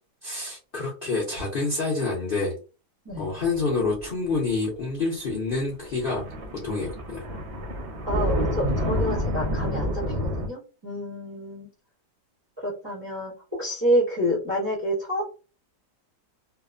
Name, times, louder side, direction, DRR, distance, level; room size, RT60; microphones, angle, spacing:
voice 1, 0.2-2.5 3.2-6.3 6.5-7.2, left 3 dB, 60° left, -4 dB, 0.5 m, -27 dB
sound 1, 3.1-3.7 4.0-4.5 5.3-5.5 5.8-10.5, equal, 60° right, 0.7 m, -28 dB
voice 2, 8.0-11.7 12.6-13.3 13.6-15.2, equal, 35° right, -6 dB, 0.4 m, -28 dB
2.8 x 2.0 x 2.4 m, 0.34 s
omnidirectional pair, 1.8 m